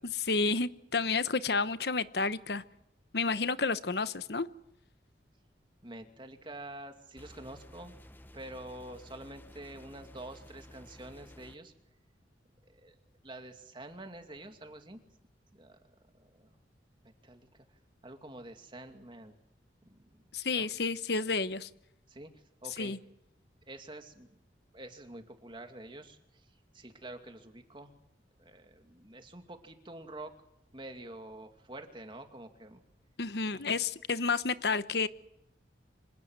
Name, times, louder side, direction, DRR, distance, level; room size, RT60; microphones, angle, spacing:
voice 1, 0.0-2.6 3.1-4.5 20.3-21.7 22.8-23.0 33.2-35.1, left 4 dB, 60° left, 14 dB, 1.0 m, -30 dB
voice 2, 5.8-7.9 8.3-11.7 12.6-13.0 13.2-15.0 15.5-15.8 16.1-16.6 17.0-17.6 18.0-19.4 19.9-20.2 20.5-20.7 22.1-22.9 23.7-24.4 24.7-27.9 28.4-30.3 30.7-32.8 33.5-33.6, right 1 dB, 25° right, 6 dB, 2.5 m, -47 dB
sound 1, 7.2-11.6, left 1 dB, 10° left, 1.1 m, -53 dB
26.5 x 18.0 x 8.0 m, 0.81 s
head